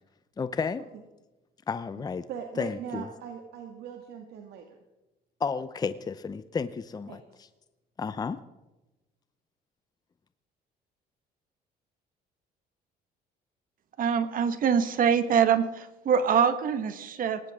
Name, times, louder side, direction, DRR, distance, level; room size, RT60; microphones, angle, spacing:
voice 1, 0.4-0.8 1.7-2.2 2.6-3.1 5.4-7.2 8.0-8.4, left 5 dB, 25° left, 12 dB, 0.7 m, -32 dB
voice 2, 2.0-4.8 7.1-7.2, right 8 dB, 75° right, 3 dB, 1.9 m, -40 dB
voice 3, 14.0-17.4, right 7 dB, 55° right, 10 dB, 1.5 m, -24 dB
19.0 x 18.5 x 3.7 m, 1.0 s
cardioid pair, 110°, 17 cm